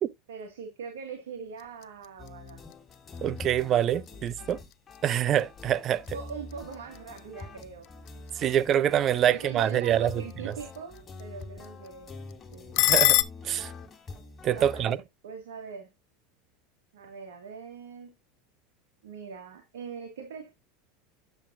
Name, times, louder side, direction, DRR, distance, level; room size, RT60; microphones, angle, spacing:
voice 1, 0.3-2.6 4.1-4.5 6.1-8.5 9.3-12.2 12.5-12.8 14.5-15.9 16.9-18.1 19.0-20.5, right 6 dB, 80° right, 1.8 m, -42 dB
sound 1, 1.4-13.2, left 20 dB, 55° left, 0.6 m, -33 dB
sound 2, 2.2-15.0, left 3 dB, 25° left, 2.3 m, -45 dB
voice 2, 3.2-4.6 5.0-6.2 8.4-10.1 12.8-13.2 13.4-13.7 14.4-15.0, right 10 dB, 40° right, 0.6 m, -25 dB
9.1 x 7.2 x 2.5 m
hypercardioid pair, 95°, 0 cm